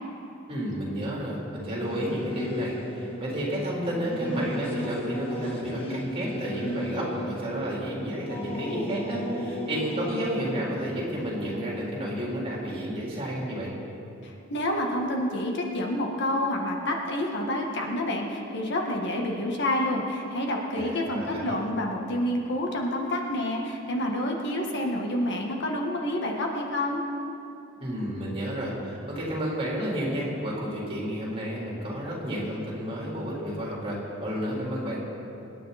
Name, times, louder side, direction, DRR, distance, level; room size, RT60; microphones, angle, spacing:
voice 1, 0.5-13.7 20.7-21.5 27.8-35.0, equal, 30° right, -5 dB, 4.0 m, -31 dB
Singing / Musical instrument, 1.8-13.6, equal, 30° left, 1.4 m, -35 dB
voice 2, 14.2-27.0, left 1 dB, 60° left, 0 dB, 1.6 m, -28 dB
25.0 x 10.0 x 4.2 m, 2.8 s
head